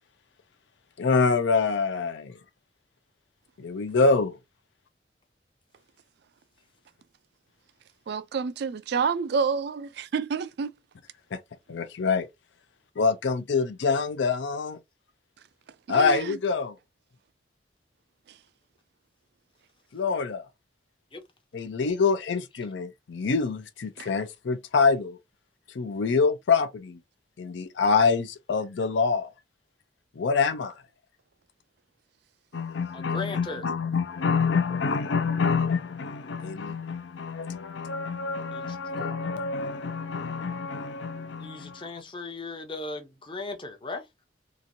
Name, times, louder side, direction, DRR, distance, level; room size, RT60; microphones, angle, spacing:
voice 1, 1.0-2.4 3.6-4.4 11.3-11.4 11.7-12.3 13.0-14.8 15.9-16.8 19.9-20.4 21.5-25.2 25.7-27.0 27.4-29.3 30.2-30.7 32.5-41.8, left 4 dB, 70° left, 0.5 m, -26 dB
voice 2, 8.1-10.7 15.9-16.4 24.0-24.1, right 5 dB, 60° right, 0.3 m, -28 dB
voice 3, 32.9-33.6 38.5-39.1 41.4-44.1, left 3 dB, 25° left, 0.7 m, -37 dB
2.9 x 2.5 x 2.6 m
head